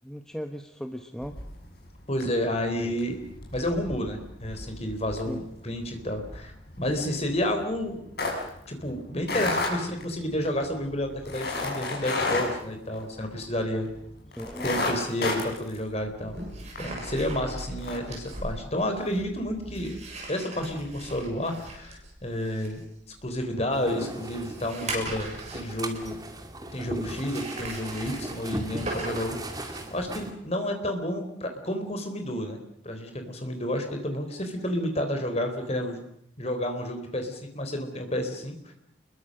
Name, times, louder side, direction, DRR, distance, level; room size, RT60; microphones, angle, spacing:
voice 1, 0.0-1.4 2.6-3.0 5.2-5.4 14.4-14.7, equal, 5° left, 5 dB, 1.0 m, -38 dB
sound 1, 1.2-1.9 2.2-2.5 2.8-13.6 13.9-14.0 14.3-16.8 17.2-17.3 17.7-18.0, left 3 dB, 55° left, 6.8 m, -32 dB
voice 2, 2.1-3.2 3.5-8.0 8.7-13.9 14.6-16.4 16.8-20.0 20.3-22.8 23.2-26.2 26.7-36.0 36.4-38.5, left 1 dB, 35° left, 5 dB, 3.9 m, -30 dB
sound 2, 14.5-14.6 16.0-26.3 27.1-30.1, right 2 dB, 35° right, 7.4 m, -39 dB
sound 3, 23.7-30.3, right 1 dB, 20° right, 2.4 m, -38 dB
28.0 x 22.0 x 6.5 m, 0.74 s
head